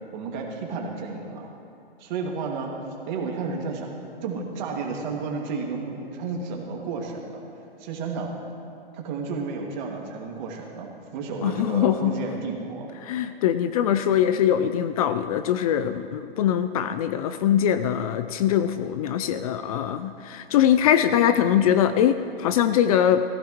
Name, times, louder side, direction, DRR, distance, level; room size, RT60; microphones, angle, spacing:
voice 1, 0.1-1.5 2.0-2.7 3.1-3.9 4.2-7.4 7.8-8.3 8.9-12.9 14.4-14.5, right 4 dB, 50° right, 0 dB, 2.3 m, -32 dB
voice 2, 11.4-12.1 13.0-23.2, left 10 dB, 40° left, 11 dB, 0.4 m, -22 dB
18.0 x 15.0 x 3.1 m, 2.6 s
hypercardioid pair, 130°, 31 cm